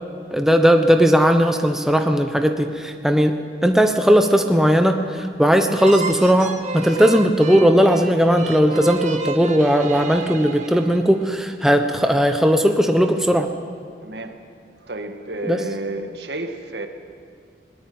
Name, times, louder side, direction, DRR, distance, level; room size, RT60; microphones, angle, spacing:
voice 1, 0.3-13.5 15.4-15.6, equal, 5° right, 5 dB, 1.0 m, -17 dB
sound 1, 5.8-11.3, right 3 dB, 45° right, 1.6 m, -32 dB
voice 2, 14.0-14.3 14.8-16.9, right 2 dB, 70° right, 6 dB, 2.0 m, -30 dB
20.0 x 19.0 x 8.9 m, 2.5 s
head